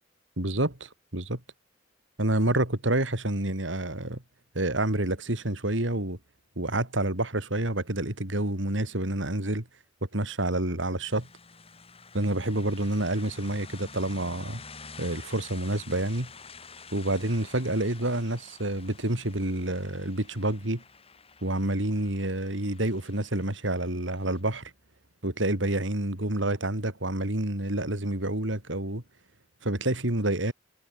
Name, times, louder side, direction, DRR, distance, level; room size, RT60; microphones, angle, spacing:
voice 1, 0.4-1.4 2.2-4.2 4.5-6.2 6.6-9.7 10.1-11.3 12.1-14.6 15.0-16.3 16.9-20.8 21.4-24.7 25.2-29.0 29.6-30.5, right 1 dB, 80° right, 4.0 m, -28 dB
sound 1, 11.0-24.4, left 5 dB, 30° left, 5.4 m, -49 dB
head